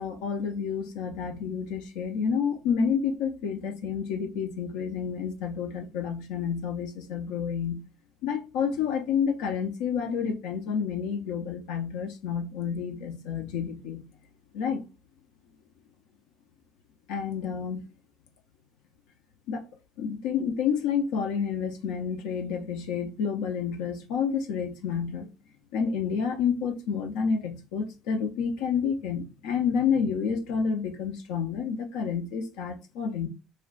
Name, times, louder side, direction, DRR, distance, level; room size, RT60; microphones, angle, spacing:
voice 1, 0.0-7.8 8.2-14.1 14.5-14.8 17.1-17.8 19.5-19.6 20.0-25.3 25.7-33.3, left 6 dB, 90° left, 0.5 m, -29 dB
2.4 x 2.2 x 3.6 m
cardioid pair, 105°, 0 cm